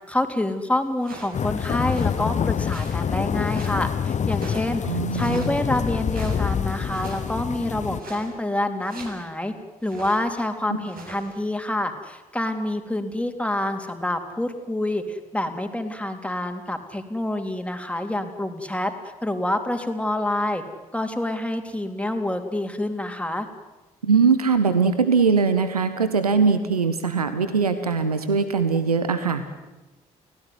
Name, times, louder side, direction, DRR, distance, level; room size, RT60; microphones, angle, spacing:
voice 1, 0.1-9.5 9.8-18.9 19.2-20.6 20.9-23.5, left 1 dB, 5° left, 6 dB, 3.7 m, -27 dB
sound 1, 1.0-1.4 1.7-2.2 2.7-3.8 4.3-4.8 5.1-5.6 6.1-6.6 6.9-7.3 7.9-8.3 8.8-9.2 9.8-10.3 10.8-11.4, right 2 dB, 50° right, 7.0 m, -42 dB
sound 2, 1.3-8.0, left 7 dB, 40° left, 1.0 m, -26 dB
voice 2, 4.9-5.5 24.0-29.4, right 5 dB, 90° right, 11 dB, 1.1 m, -21 dB
30.0 x 17.0 x 9.8 m, 1.1 s
figure-of-eight pair, 45°, 19 cm